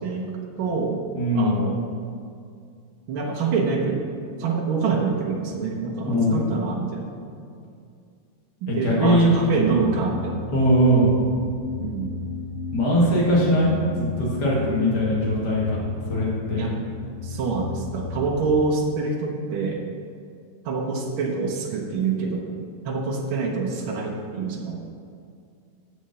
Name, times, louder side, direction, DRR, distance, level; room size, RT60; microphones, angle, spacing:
voice 1, 0.0-0.3 0.6-1.0 1.3-1.8 3.1-4.1 4.4-7.1 8.6-10.4 11.8-12.2 16.6-16.8 17.2-19.8 20.6-22.6 22.8-24.8, right 4 dB, 80° right, 0 dB, 1.9 m, -26 dB
voice 2, 1.1-1.5 6.0-6.4 8.7-9.3 10.5-11.1 12.7-13.7 14.0-15.8 16.1-16.6, equal, 55° left, -6 dB, 2.7 m, -20 dB
sound 1, 9.0-18.7, left 3 dB, 55° right, 1.7 m, -35 dB
7.9 x 6.2 x 6.8 m, 2.3 s
omnidirectional pair, 2.2 m